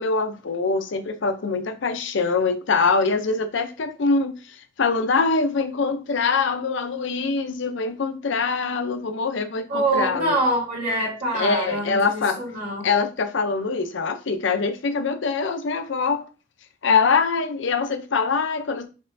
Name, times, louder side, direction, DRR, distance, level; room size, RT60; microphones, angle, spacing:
voice 1, 0.0-10.4 11.3-12.4 12.8-16.3 16.8-18.9, left 4 dB, 65° left, 0.6 m, -23 dB
voice 2, 9.7-12.9, right 1 dB, 50° right, 2.3 m, -25 dB
5.4 x 3.0 x 2.6 m
head